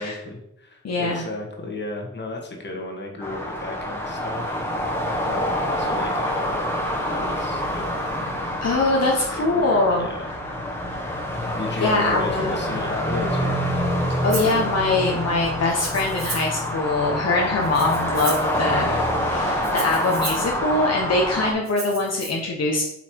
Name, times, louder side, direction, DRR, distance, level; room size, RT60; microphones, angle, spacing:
voice 1, 0.0-4.6 5.3-6.7 7.1-8.0 9.3-10.3 11.5-13.6, left 2 dB, 35° left, 1 dB, 1.8 m, -34 dB
voice 2, 0.8-1.2 8.6-10.1 11.8-12.6 14.2-22.8, left 2 dB, 55° left, -1 dB, 1.3 m, -23 dB
sound 1, 3.2-21.5, equal, 10° left, 1.7 m, -26 dB
Rattle (instrument), 14.3-14.6 15.7-16.6 17.6-18.5 19.6-20.5 21.6-22.3, right 3 dB, 45° right, 2.4 m, -34 dB
8.1 x 5.7 x 4.7 m, 0.80 s
wide cardioid pair, 155°, 30 cm